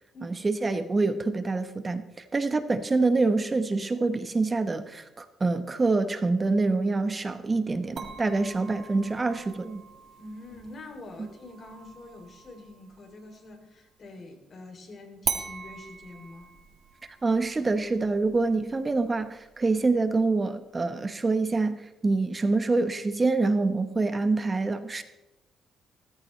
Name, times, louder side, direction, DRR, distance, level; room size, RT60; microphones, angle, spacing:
voice 1, 0.2-9.8 17.2-25.0, right 3 dB, 25° right, 10 dB, 1.0 m, -26 dB
sound 1, 8.0-13.6 15.2-20.2, right 5 dB, 45° right, 1.7 m, -41 dB
voice 2, 10.2-16.5, left 2 dB, 45° left, 3 dB, 3.1 m, -45 dB
17.0 x 14.0 x 3.2 m, 1.0 s
cardioid pair, 90°, 0 cm